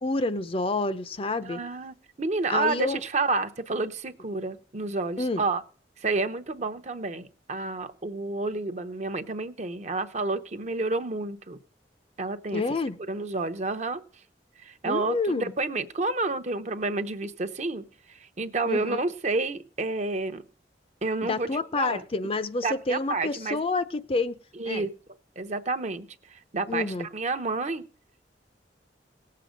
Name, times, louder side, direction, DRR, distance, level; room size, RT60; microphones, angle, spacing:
voice 1, 0.0-1.6 2.5-3.0 5.2-5.4 12.5-13.0 14.8-15.5 18.7-19.0 21.2-24.3 24.6-24.9 26.7-27.1, left 3 dB, 30° left, 0.6 m, -28 dB
voice 2, 1.4-5.6 6.0-11.6 12.2-12.6 13.1-14.0 14.6-17.8 18.4-20.4 21.0-21.5 21.8-22.0 22.6-23.6 24.6-24.9 25.4-26.1 26.5-27.8, right 3 dB, 40° right, 0.8 m, -29 dB
18.5 x 7.6 x 5.1 m
head